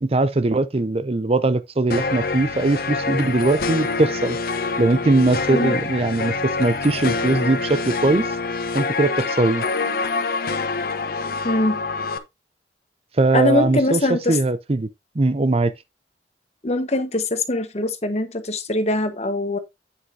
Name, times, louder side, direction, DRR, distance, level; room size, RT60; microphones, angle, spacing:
voice 1, 0.0-4.4 4.8-8.3 8.7-9.6 13.2-14.9 15.2-15.7, right 2 dB, 35° right, 0.6 m, -20 dB
sound 1, 1.9-12.2, left 4 dB, 55° left, 1.0 m, -26 dB
voice 2, 11.4-11.8 13.3-14.4 16.6-19.6, left 2 dB, 40° left, 1.3 m, -22 dB
8.9 x 7.9 x 2.7 m
head